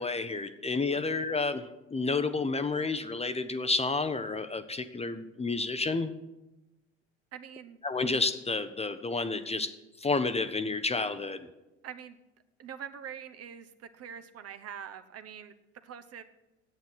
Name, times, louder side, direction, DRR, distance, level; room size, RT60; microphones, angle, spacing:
voice 1, 0.0-6.1 7.8-9.7 10.0-11.5, left 3 dB, 20° left, 10 dB, 0.8 m, -30 dB
voice 2, 7.3-7.8 11.8-12.2 12.6-13.7 14.0-15.5 15.8-16.2, right 8 dB, 45° right, 9 dB, 1.0 m, -44 dB
9.3 x 8.1 x 7.8 m, 1.0 s
hypercardioid pair, 70°, 34 cm